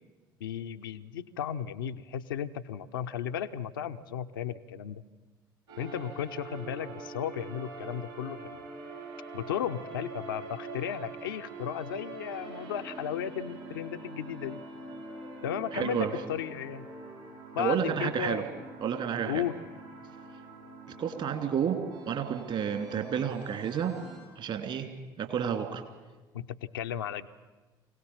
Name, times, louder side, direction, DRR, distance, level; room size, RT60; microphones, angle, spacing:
voice 1, 0.4-5.0 5.8-8.7 9.3-14.6 15.4-16.9 17.5-18.5 19.3-19.6 26.3-27.3, left 9 dB, 75° left, 7 dB, 0.7 m, -35 dB
sound 1, 5.7-24.2, right 2 dB, 70° right, 7.7 m, -45 dB
voice 2, 15.7-16.1 17.6-18.4 18.8-19.4 21.0-21.8 22.1-24.0 24.4-24.9 25.2-25.8, right 8 dB, 50° right, 7 dB, 2.7 m, -30 dB
24.5 x 17.5 x 7.2 m, 1.2 s
figure-of-eight pair, 55°, 11 cm